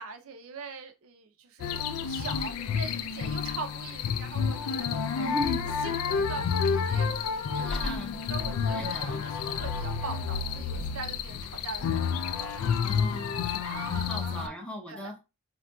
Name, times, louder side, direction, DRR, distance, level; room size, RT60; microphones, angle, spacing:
voice 1, 0.0-5.4 5.8-12.7 13.7-14.6 14.9-15.1, right 4 dB, 75° right, 0.5 m, -42 dB
sound 1, 1.6-14.5, left 6 dB, 80° left, 0.3 m, -30 dB
voice 2, 5.2-5.6 7.6-8.2 8.7-9.2 12.8-15.2, left 1 dB, 5° left, 0.5 m, -37 dB
3.6 x 2.5 x 2.2 m
head